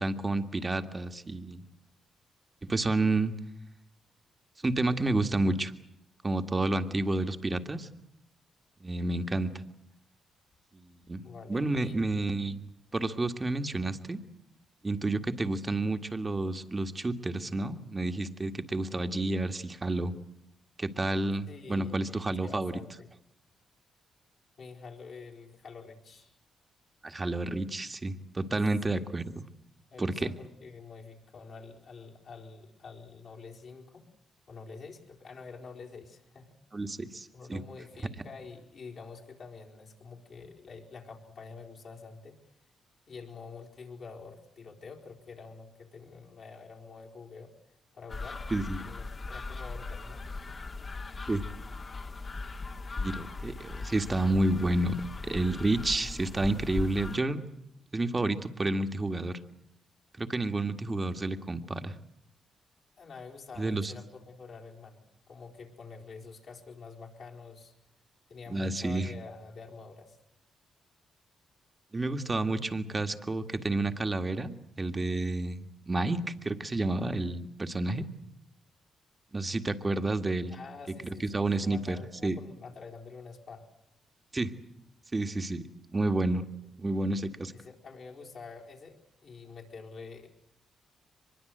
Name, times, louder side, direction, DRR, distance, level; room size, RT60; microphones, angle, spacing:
voice 1, 0.0-1.6 2.7-3.3 4.6-5.7 6.2-7.9 8.8-9.6 10.7-11.2 11.5-12.6 12.9-14.2 14.8-20.1 20.8-22.8 27.0-29.4 30.0-30.3 36.7-37.6 48.5-48.8 51.3-51.4 53.0-57.4 57.9-59.4 60.2-61.9 63.6-63.9 68.5-69.1 71.9-75.6 75.9-78.0 79.3-80.5 81.3-82.0 82.2-82.4 84.3-84.6 85.1-85.6 85.9-86.4 86.8-87.5, right 2 dB, 30° right, 7 dB, 1.9 m, -30 dB
voice 2, 11.2-12.0 21.5-22.1 22.4-23.1 24.6-26.3 28.9-29.0 29.9-34.0 34.5-36.6 37.3-42.4 43.1-47.5 47.9-48.5 48.9-50.2 63.0-67.7 68.3-70.2 79.9-80.1 80.5-83.7 87.5-90.3, left 4 dB, 60° left, 0 dB, 4.4 m, -47 dB
sound 1, 48.1-57.2, left 3 dB, 45° left, 2.0 m, -39 dB
23.5 x 21.5 x 8.0 m, 0.77 s
supercardioid pair, 55°, 0 cm